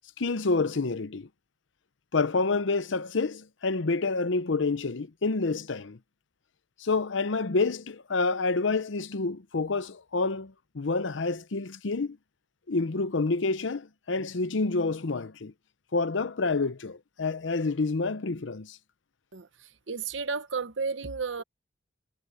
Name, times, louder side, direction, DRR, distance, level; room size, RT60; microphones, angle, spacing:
voice 1, 0.2-1.3 2.1-6.0 6.8-12.2 12.7-15.5 15.9-18.8, left 3 dB, 70° left, 0.8 m, -28 dB
voice 2, 19.9-21.4, right 5 dB, 70° right, 1.1 m, -32 dB
head